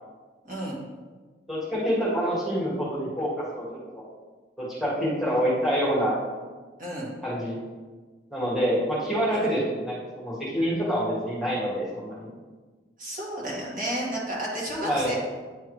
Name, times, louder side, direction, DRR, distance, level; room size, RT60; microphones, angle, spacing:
voice 1, 0.4-0.8 6.8-7.1 9.3-9.5 13.0-15.1, right 1 dB, 45° right, -5 dB, 1.7 m, -32 dB
voice 2, 1.5-3.7 3.9-4.0 4.6-6.1 7.2-7.6 8.3-12.3 14.8-15.1, equal, ahead, -8 dB, 1.6 m, -26 dB
9.3 x 3.5 x 3.1 m, 1.4 s
head